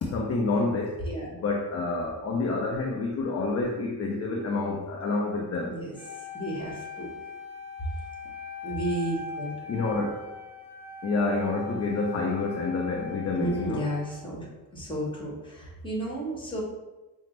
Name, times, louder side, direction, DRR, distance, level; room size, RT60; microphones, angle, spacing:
voice 1, 0.0-1.0 1.3-5.8 9.7-10.2 11.0-13.9, left 3 dB, 40° left, -1 dB, 0.5 m, -28 dB
voice 2, 5.6-5.9 6.3-7.1 8.6-9.5 13.4-14.5 14.7-16.6, right 1 dB, 10° left, -3 dB, 1.2 m, -32 dB
Wind instrument woodwind instrument, 5.9-14.2, left 4 dB, 5° right, 0.6 m, -41 dB
5.7 x 2.1 x 3.2 m, 1.1 s
cardioid pair, 110°, 41 cm